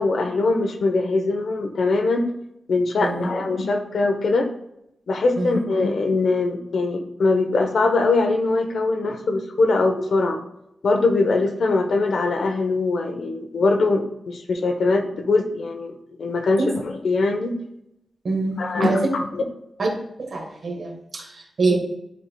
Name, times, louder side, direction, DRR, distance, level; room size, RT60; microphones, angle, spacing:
voice 1, 0.0-2.2 2.7-4.5 5.1-10.4 10.8-17.5 18.6-19.0 19.3-19.4 21.7-21.8, left 3 dB, 70° left, 4 dB, 0.8 m, -22 dB
voice 2, 18.2-19.0 19.8-19.9 20.2-21.8, right 3 dB, 60° right, 1 dB, 1.5 m, -25 dB
10.5 x 4.4 x 2.2 m, 0.82 s
wide cardioid pair, 135°, 0 cm